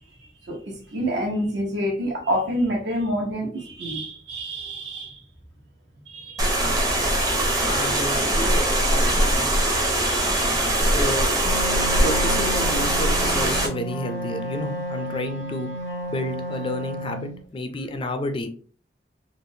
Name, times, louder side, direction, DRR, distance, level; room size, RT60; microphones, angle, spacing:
voice 1, 0.4-5.2 6.1-6.4 7.8-8.0 9.5-10.9, equal, 80° right, 0 dB, 1.0 m, -28 dB
sound 1, 6.4-13.7, right 1 dB, 20° right, 0.6 m, -21 dB
voice 2, 7.7-9.5 10.9-11.3 12.0-15.7 16.1-18.5, left 1 dB, 30° left, 8 dB, 0.3 m, -30 dB
Wind instrument woodwind instrument, 11.4-17.4, right 1 dB, 75° left, 0.7 m, -32 dB
3.3 x 2.1 x 2.6 m, 0.44 s
head